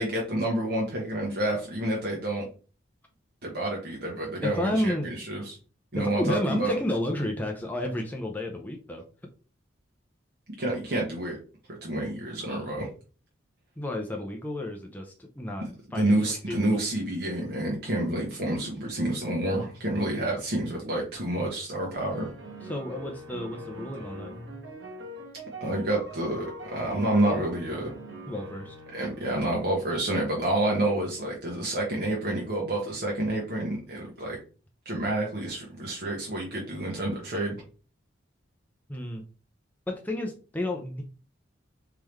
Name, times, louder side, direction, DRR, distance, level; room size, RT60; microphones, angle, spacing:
voice 1, 0.0-2.5 3.4-5.6 5.9-6.8 10.6-11.4 11.7-12.9 15.9-22.3 25.6-27.9 28.9-34.4 34.8-37.6, right 1 dB, 55° right, -2 dB, 1.0 m, -28 dB
voice 2, 4.4-5.1 6.0-9.0 13.8-16.8 22.6-24.3 28.3-28.7 38.9-39.2 39.9-41.0, left 1 dB, 10° left, 1 dB, 0.5 m, -31 dB
sound 1, 21.9-29.7, equal, 70° right, 1.3 m, -43 dB
3.6 x 3.3 x 3.1 m, 0.37 s
head